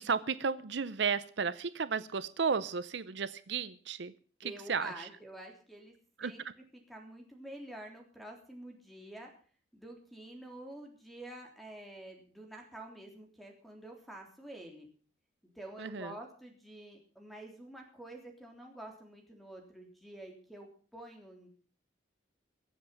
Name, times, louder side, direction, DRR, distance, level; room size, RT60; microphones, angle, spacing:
voice 1, 0.0-4.1 4.7-5.1 6.2-6.5 15.8-16.1, right 5 dB, 65° right, 15 dB, 0.6 m, -33 dB
voice 2, 4.4-5.9 6.2-6.5 6.9-9.3 9.7-14.9 15.6-21.5, right 1 dB, ahead, 2 dB, 3.5 m, -48 dB
22.5 x 7.9 x 5.8 m, 0.42 s
head